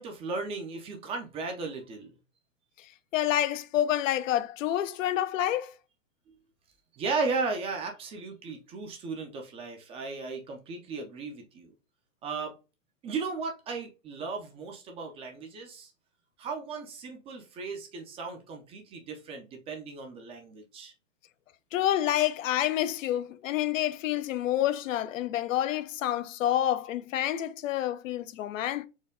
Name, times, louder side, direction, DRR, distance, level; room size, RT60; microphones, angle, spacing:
voice 1, 0.0-2.1 6.3-6.4 6.9-11.7 12.2-12.5 13.0-15.9 16.4-20.9, right 4 dB, 15° right, 0.4 m, -36 dB
voice 2, 2.8-5.7 21.7-28.8, left 12 dB, 75° left, 0.6 m, -28 dB
4.4 x 2.2 x 3.6 m
hypercardioid pair, 130°, 39 cm